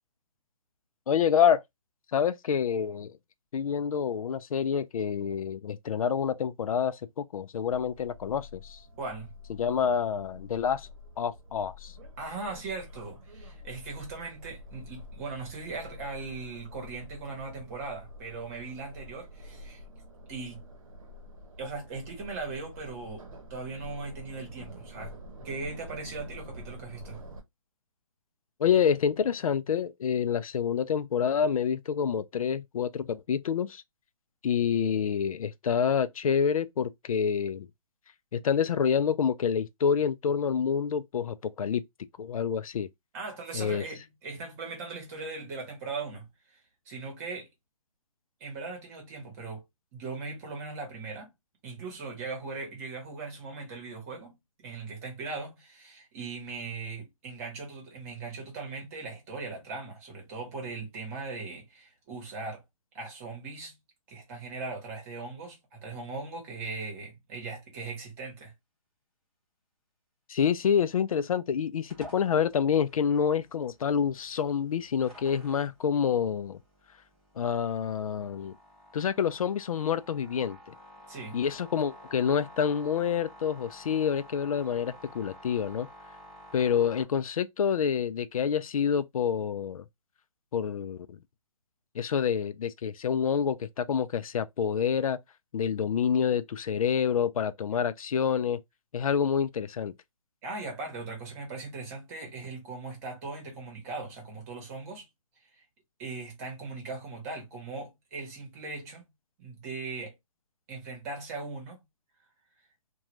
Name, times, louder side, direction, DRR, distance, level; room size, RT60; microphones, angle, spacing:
voice 1, 1.1-1.6 2.1-3.1 3.5-8.8 9.6-10.9 11.2-11.9 28.6-33.8 34.4-37.7 38.3-41.8 42.2-42.9 43.5-43.8 70.3-76.6 77.4-78.5 78.9-80.7 81.3-85.9 86.5-89.8 90.5-91.2 91.9-95.2 95.5-98.6 98.9-99.9, left 7 dB, 75° left, 0.4 m, -27 dB
sound 1, 7.7-27.4, left 1 dB, 70° right, 0.8 m, -47 dB
voice 2, 9.0-9.3 12.2-19.8 20.3-20.7 21.6-23.2 23.5-25.2 25.4-27.2 43.1-46.3 46.9-47.5 48.4-49.6 49.9-51.3 51.6-54.4 54.6-62.6 62.9-63.7 64.1-68.5 81.1-81.4 100.4-105.1 106.0-109.0 109.4-110.1 110.7-111.8, right 3 dB, 25° right, 1.1 m, -39 dB
sound 2, 71.9-87.0, equal, ahead, 1.0 m, -52 dB
2.4 x 2.3 x 3.0 m
hypercardioid pair, 160°, 18 cm